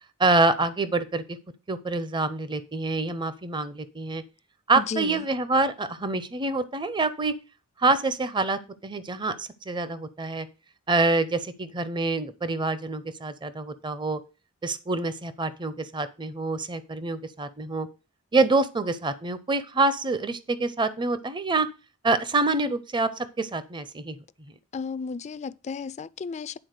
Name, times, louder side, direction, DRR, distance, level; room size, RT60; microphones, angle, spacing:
voice 1, 0.2-1.2 1.7-4.2 4.7-7.3 7.8-10.5 10.9-14.2 14.6-17.9 18.3-21.7 22.0-24.2, right 3 dB, 20° right, 0.6 m, -26 dB
voice 2, 4.8-5.3 24.7-26.6, left 5 dB, 30° left, 0.3 m, -33 dB
9.8 x 3.9 x 6.5 m
head